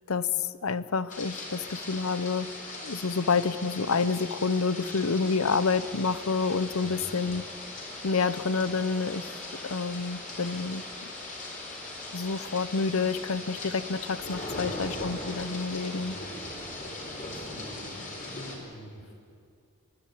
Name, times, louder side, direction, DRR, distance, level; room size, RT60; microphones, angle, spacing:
voice 1, 0.1-2.5 2.8-7.4 8.0-10.8 12.1-16.2, left 4 dB, 70° left, 16 dB, 0.8 m, -28 dB
sound 1, 1.1-18.6, left 2 dB, 35° left, 4.2 m, -40 dB
sound 2, 5.2-16.2, left 1 dB, 5° left, 1.3 m, -49 dB
voice 2, 14.5-14.9 16.0-16.4 17.0-19.1, equal, 85° left, 1 dB, 5.5 m, -47 dB
26.5 x 11.5 x 10.0 m, 2.4 s
head